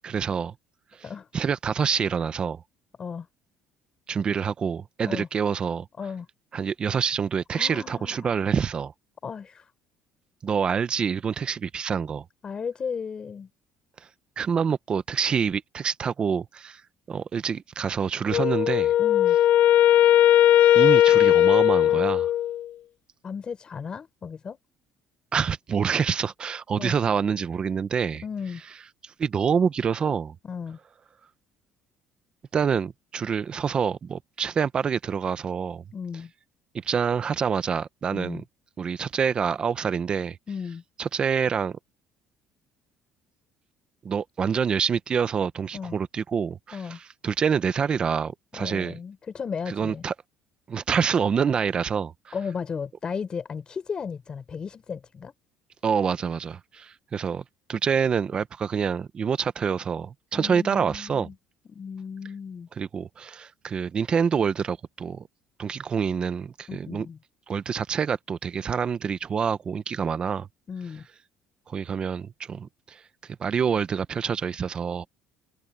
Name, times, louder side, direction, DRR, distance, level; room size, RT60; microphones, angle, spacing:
voice 1, 0.0-0.5 1.3-2.6 4.1-5.9 6.5-8.9 10.4-12.2 14.4-16.8 17.1-18.9 20.7-22.3 25.3-28.2 29.0-30.3 32.5-35.8 36.8-38.4 38.8-40.4 41.0-41.8 44.0-46.8 47.2-49.0 49.7-50.1 50.7-52.3 55.8-57.4 57.7-61.3 62.8-65.3 65.6-67.1 67.5-70.5 71.7-75.1, right 6 dB, 30° right, 0.8 m, -26 dB
voice 2, 7.5-8.4 9.2-9.7 12.4-13.5 19.0-19.4 21.8-22.1 23.2-24.6 26.8-26.9 28.2-28.6 30.4-30.8 35.9-36.3 38.1-38.4 40.5-40.8 45.7-45.9 46.7-47.0 48.5-50.0 52.3-55.3 60.4-61.3 61.7-62.7 66.7-67.2 70.7-71.1, left 6 dB, 30° left, 4.5 m, -35 dB
Wind instrument woodwind instrument, 18.3-22.7, left 12 dB, 55° left, 0.6 m, -18 dB
cardioid pair, 150°, 3 cm